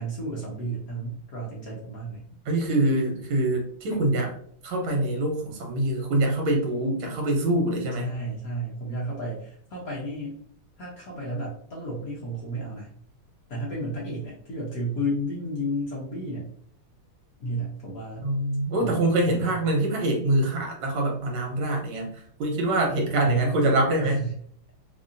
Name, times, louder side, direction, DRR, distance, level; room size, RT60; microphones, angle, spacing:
voice 1, 0.0-2.2 7.9-10.4 10.8-12.9 13.5-16.5 17.4-18.3 18.8-19.0 19.3-19.5 23.2-24.3, right 1 dB, 60° left, -4 dB, 1.0 m, -32 dB
voice 2, 2.4-4.3 4.6-8.1 18.2-24.3, right 1 dB, 70° right, 1 dB, 1.7 m, -25 dB
3.8 x 2.7 x 2.6 m, 0.62 s
omnidirectional pair, 2.4 m